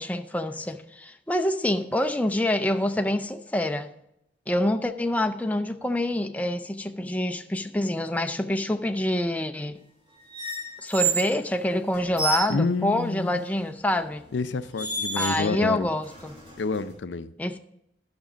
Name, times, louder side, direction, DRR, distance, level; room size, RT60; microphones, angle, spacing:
voice 1, 0.0-3.9 4.5-9.8 10.8-14.2 15.2-16.4 17.4-17.6, left 1 dB, 10° left, 0.5 m, -26 dB
sound 1, 10.3-11.3 11.9-12.5 13.9-14.1 14.7-15.6 16.0-16.9, right 4 dB, 30° right, 4.2 m, -30 dB
voice 2, 12.5-13.4 14.3-15.9 16.6-17.3, left 4 dB, 90° left, 0.5 m, -28 dB
11.5 x 6.1 x 5.0 m
head